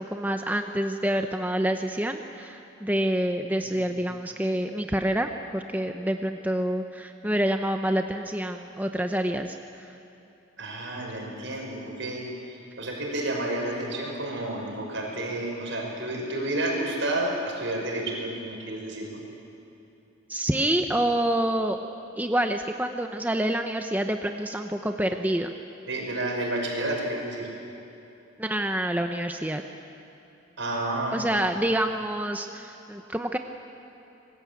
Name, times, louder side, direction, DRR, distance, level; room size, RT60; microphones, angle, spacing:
voice 1, 0.0-9.9 20.3-21.8 22.2-25.5 28.4-29.6 31.1-33.4, right 1 dB, 10° right, 5 dB, 0.8 m, -27 dB
voice 2, 10.6-19.2 25.9-27.5 30.6-31.2, right 1 dB, 75° right, 0 dB, 6.0 m, -30 dB
25.5 x 20.5 x 8.6 m, 2.9 s
head